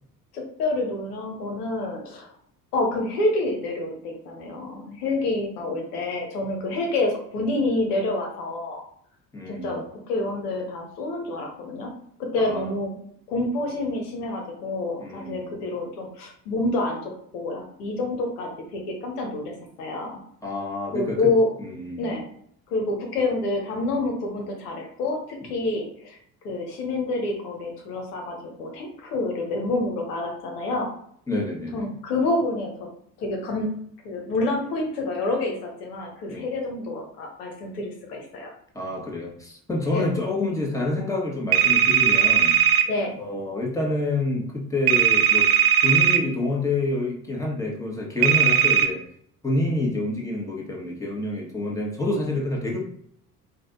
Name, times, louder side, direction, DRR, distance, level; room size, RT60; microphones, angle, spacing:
voice 1, 0.3-2.3 2.7-8.8 9.4-11.9 12.3-13.0 13.3-20.2 20.9-21.5 22.0-22.2 22.7-26.2 26.4-30.9 31.7-32.7 33.2-33.7 34.0-38.5 39.9-40.0 42.9-43.1, left 2 dB, 65° left, 1 dB, 1.1 m, -28 dB
voice 2, 9.3-9.8 12.4-12.7 15.0-15.5 20.4-21.3 21.6-22.1 31.3-31.8 36.3-36.5 38.7-42.6 43.2-45.5 45.8-49.0 49.4-52.8, left 2 dB, 5° left, -2 dB, 1.5 m, -27 dB
sound 1, 41.5-42.9 44.9-46.2 48.2-48.9, right 9 dB, 45° right, 0.6 m, -18 dB
5.1 x 2.5 x 3.8 m, 0.67 s
figure-of-eight pair, 55°, 49 cm